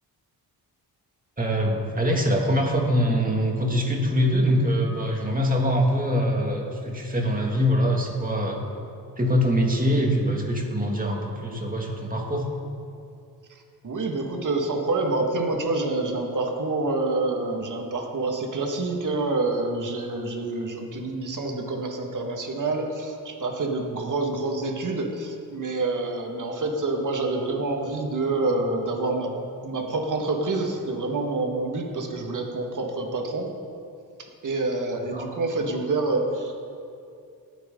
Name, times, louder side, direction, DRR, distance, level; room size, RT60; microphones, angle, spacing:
voice 1, 1.4-8.6 9.2-12.5 35.1-35.3, equal, 20° right, 0 dB, 2.4 m, -23 dB
voice 2, 13.8-29.4 29.6-33.5 34.4-36.5, right 2 dB, 55° right, 2 dB, 1.9 m, -27 dB
19.0 x 9.3 x 3.9 m, 2.5 s
cardioid pair, 80°, 38 cm